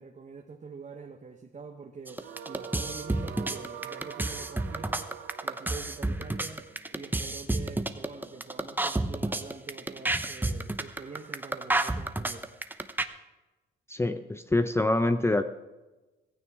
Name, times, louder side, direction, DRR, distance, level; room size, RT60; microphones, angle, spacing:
voice 1, 0.0-5.1 5.4-12.5, right 5 dB, 35° right, 2 dB, 1.3 m, -45 dB
sound 1, 2.1-13.0, right 2 dB, 10° right, 0.9 m, -30 dB
sound 2, 2.2-7.4, right 7 dB, 75° right, 1.2 m, -44 dB
voice 2, 13.9-15.4, left 2 dB, 15° left, 9 dB, 0.6 m, -25 dB
15.5 x 15.5 x 3.7 m, 1.1 s
cardioid pair, 90°, 20 cm